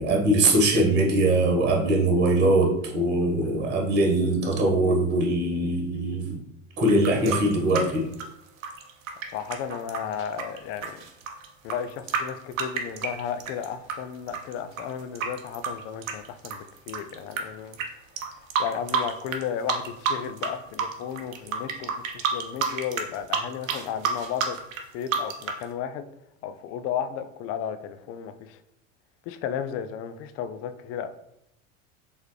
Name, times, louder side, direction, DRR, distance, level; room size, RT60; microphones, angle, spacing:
voice 1, 0.0-6.4 6.8-8.1, right 1 dB, 25° right, 0 dB, 1.2 m, -22 dB
sound 1, 6.8-14.0 14.3-17.4 17.7-17.9 18.2-19.4 19.7-20.5 20.7-25.6, right 6 dB, 75° right, 0.8 m, -29 dB
voice 2, 9.3-11.0 11.6-17.8 18.2-18.3 18.6-24.6 24.9-26.1 26.4-28.6 29.3-31.1, left 8 dB, 40° left, 11 dB, 0.4 m, -34 dB
4.5 x 3.3 x 3.1 m, 0.81 s
figure-of-eight pair, 75°, 40 cm